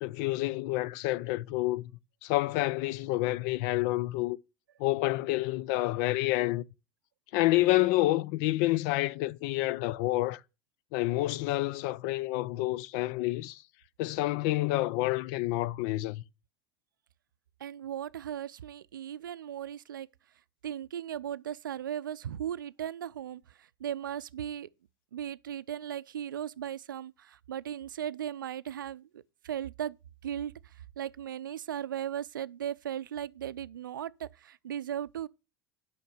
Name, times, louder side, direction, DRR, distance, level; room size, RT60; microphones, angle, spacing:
voice 1, 0.0-1.9 2.2-4.4 4.8-6.6 7.3-10.4 10.9-13.6 14.0-16.2, left 18 dB, 60° left, 0.5 m, -28 dB
voice 2, 17.6-20.1 20.6-24.7 25.1-30.0 30.2-35.3, right 10 dB, 80° right, 0.4 m, -37 dB
9.1 x 5.8 x 7.0 m
hypercardioid pair, 75°, 11 cm